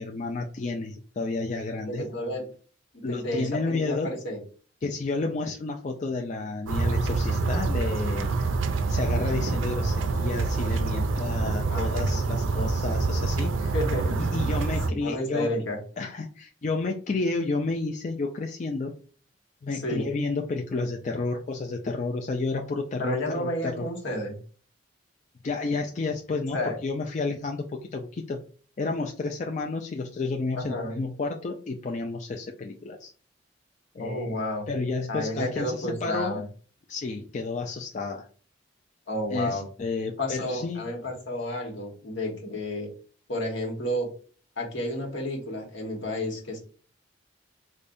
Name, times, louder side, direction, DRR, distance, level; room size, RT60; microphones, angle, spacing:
voice 1, 0.0-2.1 3.0-4.1 4.8-8.5 8.9-13.7 14.2-15.5 16.0-18.9 19.6-23.9 25.4-28.4 28.8-33.1 33.9-34.4 34.7-36.5 36.9-38.3 39.3-40.8, left 3 dB, 40° left, 2 dB, 0.3 m, -31 dB
voice 2, 1.9-2.5 3.1-4.4 11.5-12.2 13.7-14.5 14.9-15.8 19.7-20.1 23.0-24.4 26.5-26.8 30.6-31.0 34.0-34.7 35.1-36.4 39.1-39.6 40.2-42.9 43.3-44.1 44.6-46.6, left 1 dB, 75° left, 0 dB, 1.2 m, -31 dB
sound 1, 6.7-14.9, right 3 dB, 85° right, 0.5 m, -26 dB
5.0 x 2.2 x 2.5 m, 0.41 s
head